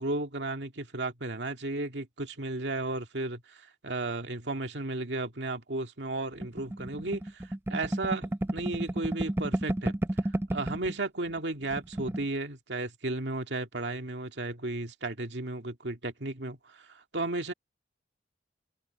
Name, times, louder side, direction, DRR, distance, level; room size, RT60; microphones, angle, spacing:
voice 1, 0.0-10.0 10.5-17.5, right 2 dB, 80° right, 2.1 m, -34 dB
sound 1, 6.4-10.9 11.3-11.4 11.6-12.2, right 1 dB, 15° right, 0.4 m, -32 dB
head